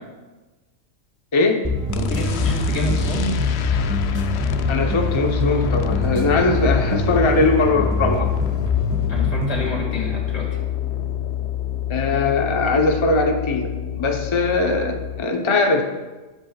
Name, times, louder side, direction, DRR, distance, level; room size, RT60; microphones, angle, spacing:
voice 1, 1.3-1.7 4.7-8.3 11.9-15.8, left 3 dB, 25° left, 3 dB, 0.7 m, -20 dB
sound 1, 1.6-9.7, equal, 15° right, 1.2 m, -25 dB
voice 2, 1.9-3.4 9.1-10.5, left 1 dB, 80° left, -1 dB, 2.7 m, -28 dB
sound 2, 1.9-15.2, left 11 dB, 65° left, 0.8 m, -26 dB
20.0 x 8.1 x 2.3 m, 1.2 s
omnidirectional pair, 1.3 m